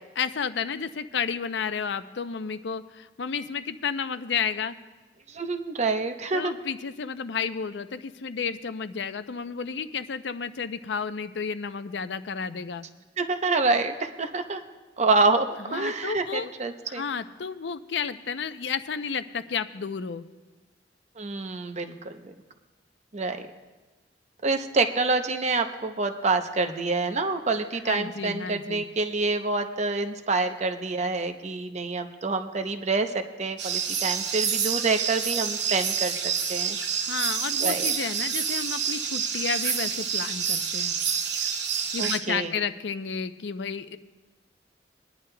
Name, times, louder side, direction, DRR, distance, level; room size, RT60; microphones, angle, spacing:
voice 1, 0.2-4.8 6.3-12.8 15.7-16.5 16.9-20.2 27.9-28.8 37.0-40.9 41.9-44.0, left 6 dB, 75° left, 11 dB, 0.5 m, -32 dB
voice 2, 5.3-6.5 13.2-14.6 15.0-17.0 21.2-22.3 23.1-23.4 24.4-36.8 37.6-37.9 42.0-42.6, right 3 dB, 40° right, 7 dB, 0.7 m, -27 dB
sound 1, 33.6-42.2, right 7 dB, 70° right, 0.9 m, -28 dB
22.5 x 10.0 x 2.2 m, 1.3 s
head